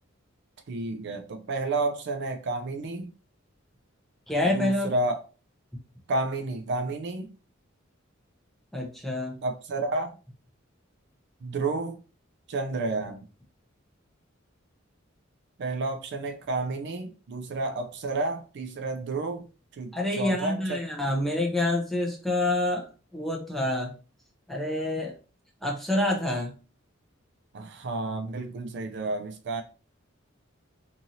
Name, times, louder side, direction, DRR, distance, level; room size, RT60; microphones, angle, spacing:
voice 1, 0.7-3.1 4.4-5.2 6.1-7.3 9.4-10.2 11.4-12.0 12.5-13.3 15.6-19.5 19.7-20.8 27.5-29.6, right 2 dB, 60° right, 0.4 m, -31 dB
voice 2, 4.3-4.9 8.7-9.4 19.9-22.8 23.1-23.9 24.5-25.1 25.6-26.5, left 1 dB, ahead, 0.7 m, -27 dB
2.9 x 2.6 x 2.6 m
head